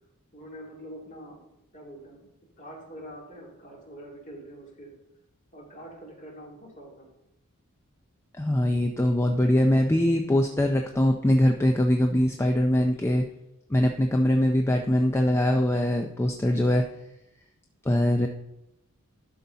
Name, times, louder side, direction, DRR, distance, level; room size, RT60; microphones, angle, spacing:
voice 1, 0.3-1.4 1.7-2.3 2.6-4.9 5.5-7.1, equal, 35° left, -2 dB, 2.4 m, -44 dB
voice 2, 8.4-13.2 13.7-16.8 17.9-18.3, left 1 dB, 10° left, 4 dB, 0.4 m, -22 dB
11.5 x 4.1 x 5.7 m, 0.87 s
head